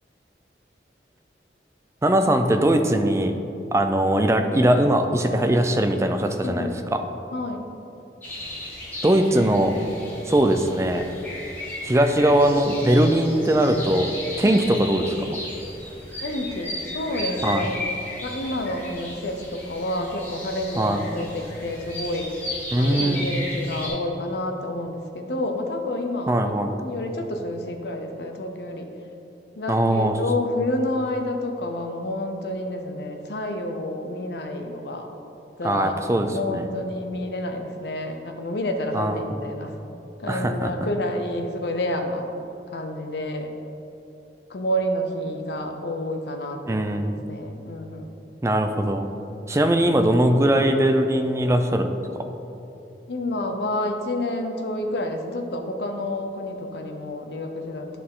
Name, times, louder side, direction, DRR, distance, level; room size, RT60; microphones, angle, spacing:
voice 1, 2.0-3.3 3.7-7.0 9.0-9.7 10.3-11.0 11.8-14.1 14.4-15.1 17.4-17.7 20.8-21.0 22.7-23.3 26.3-26.7 29.7-30.2 35.6-36.7 38.9-39.3 40.3-40.7 46.7-47.2 48.4-49.1 49.5-51.9, right 1 dB, 15° right, 6 dB, 0.4 m, -20 dB
voice 2, 7.3-7.7 14.4-14.6 16.2-17.8 18.2-22.3 22.8-26.5 26.8-28.9 29.6-35.1 35.6-39.7 40.2-42.3 42.7-43.5 44.5-48.1 53.1-57.9, left 1 dB, 70° left, 5 dB, 0.7 m, -29 dB
sound 1, 8.2-23.9, left 1 dB, 10° left, 1.5 m, -35 dB
10.0 x 4.1 x 3.7 m, 2.9 s
head